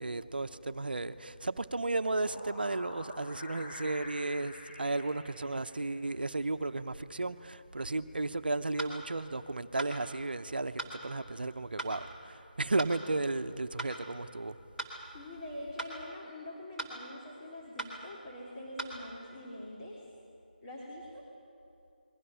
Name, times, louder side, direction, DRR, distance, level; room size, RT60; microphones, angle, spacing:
voice 1, 0.0-14.6, right 2 dB, 75° right, 11 dB, 0.9 m, -34 dB
sound 1, 1.8-6.2, left 1 dB, 45° left, 5.5 m, -48 dB
sound 2, 8.8-9.0 9.8-9.9 10.8-11.0 11.8-12.0 12.8-13.0 13.8-13.9 14.8-15.0 15.8-16.0 16.8-17.0 17.8-18.0 18.8-19.0, right 1 dB, 5° left, 2.3 m, -38 dB
voice 2, 15.1-20.0 20.6-21.2, left 1 dB, 30° left, -5 dB, 3.4 m, -44 dB
29.0 x 22.0 x 5.8 m, 2.7 s
figure-of-eight pair, 155°, 5 cm